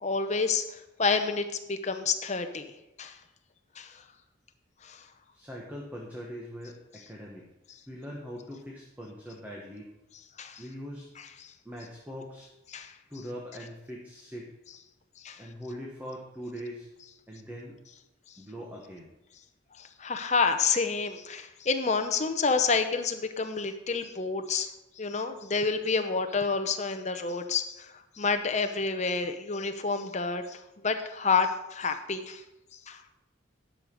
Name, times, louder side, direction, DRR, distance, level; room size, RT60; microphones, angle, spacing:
voice 1, 0.0-2.7 3.0-3.2 3.8-4.0 4.8-5.0 10.4-10.6 11.4-11.5 12.7-12.9 15.2-15.4 19.8-24.7 25.0-32.4 32.9-33.0, left 4 dB, 35° left, 7 dB, 0.7 m, -29 dB
voice 2, 5.3-7.5 7.9-9.9 10.6-11.1 11.6-12.5 13.1-14.5 15.3-16.9 17.3-17.8 18.4-19.1, equal, 10° right, -3 dB, 1.2 m, -41 dB
10.5 x 6.4 x 5.2 m, 0.96 s
head